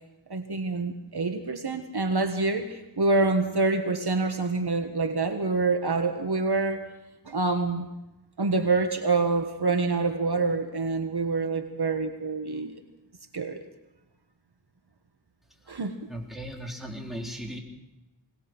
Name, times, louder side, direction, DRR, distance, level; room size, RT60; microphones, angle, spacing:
voice 1, 0.3-6.8 7.2-7.9 8.4-12.7 13.3-13.6 15.7-16.0, right 3 dB, 65° right, 6 dB, 1.6 m, -26 dB
voice 2, 16.1-17.6, equal, ahead, 0 dB, 3.9 m, -37 dB
21.5 x 19.5 x 6.2 m, 0.97 s
wide cardioid pair, 55°, 42 cm